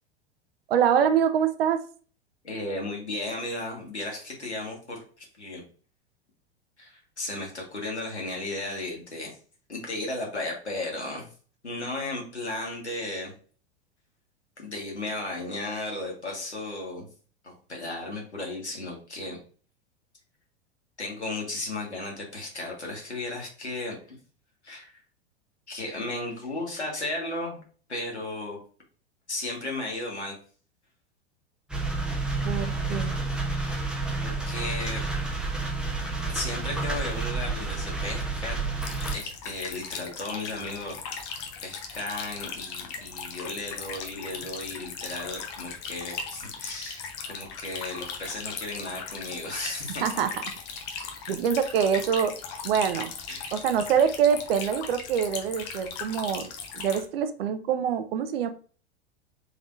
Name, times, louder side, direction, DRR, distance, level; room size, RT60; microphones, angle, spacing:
voice 1, 0.7-1.8 32.4-33.1 50.0-50.3 51.3-52.4 52.6-53.1 53.5-56.5 56.7-58.5, right 8 dB, 60° right, 9 dB, 0.6 m, -25 dB
voice 2, 2.4-5.6 6.8-9.4 9.7-11.3 11.6-13.3 14.6-17.1 17.4-19.4 21.0-24.2 24.6-25.0 25.7-27.6 27.9-28.6 29.3-30.3 33.5-33.9 34.2-35.0 36.3-38.6 39.1-41.0 41.6-50.0 53.3-53.5, left 2 dB, 85° left, -1 dB, 1.6 m, -35 dB
sound 1, 31.7-39.1, right 3 dB, 5° right, 0.8 m, -30 dB
sound 2, 38.8-57.1, left 6 dB, 40° left, 0.9 m, -38 dB
3.7 x 3.5 x 2.5 m, 0.41 s
figure-of-eight pair, 90°, 33 cm